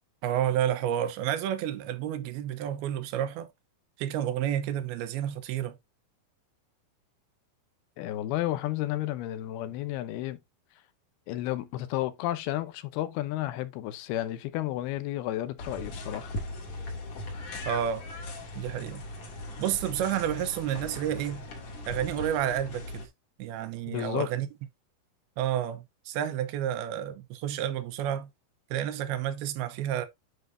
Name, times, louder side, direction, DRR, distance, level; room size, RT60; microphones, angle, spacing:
voice 1, 0.2-3.5 4.0-5.8 17.7-18.1 18.6-19.0 19.6-21.5 21.9-23.1 23.4-24.5 25.4-28.3 28.7-30.1, right 10 dB, 80° right, 2.7 m, -30 dB
voice 2, 8.0-10.4 11.3-16.4 23.9-24.3, left 14 dB, 80° left, 2.7 m, -32 dB
sound 1, 15.6-23.1, left 2 dB, 50° left, 2.9 m, -39 dB
9.7 x 5.2 x 2.6 m
omnidirectional pair, 4.4 m